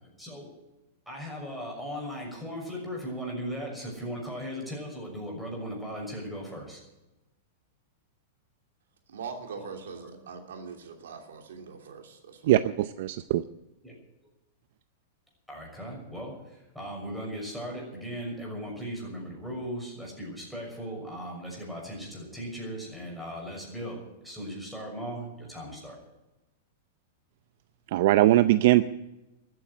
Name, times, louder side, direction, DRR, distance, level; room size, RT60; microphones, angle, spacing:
voice 1, 0.2-0.5 1.1-6.8 9.6-9.7 10.0-10.1 13.8-13.9 15.5-26.0, equal, ahead, -2 dB, 6.3 m, -38 dB
voice 2, 9.1-12.5, right 5 dB, 90° right, 4 dB, 2.9 m, -42 dB
voice 3, 12.5-13.4 27.9-28.8, right 15 dB, 60° right, 13 dB, 0.5 m, -21 dB
13.5 x 9.5 x 9.9 m, 0.99 s
supercardioid pair, 145°, 0 cm